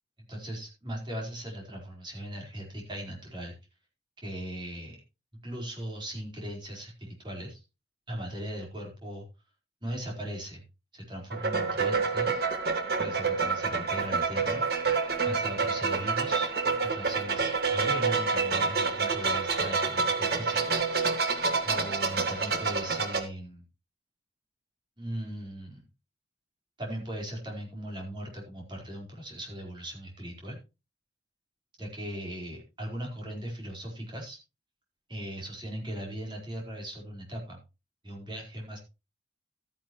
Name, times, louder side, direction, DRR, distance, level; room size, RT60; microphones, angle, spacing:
voice 1, 0.3-3.5 4.2-5.0 5.4-7.6 8.1-9.3 9.8-10.6 10.9-12.5 13.0-14.6 15.2-16.5 16.8-20.7 21.6-23.6 25.0-25.8 26.8-30.6 31.8-34.4 35.1-37.6 38.0-38.8, equal, 25° right, -1 dB, 4.3 m, -38 dB
sound 1, 11.3-23.2, right 4 dB, 55° right, 1.7 m, -28 dB
13.5 x 9.6 x 3.1 m, 0.29 s
head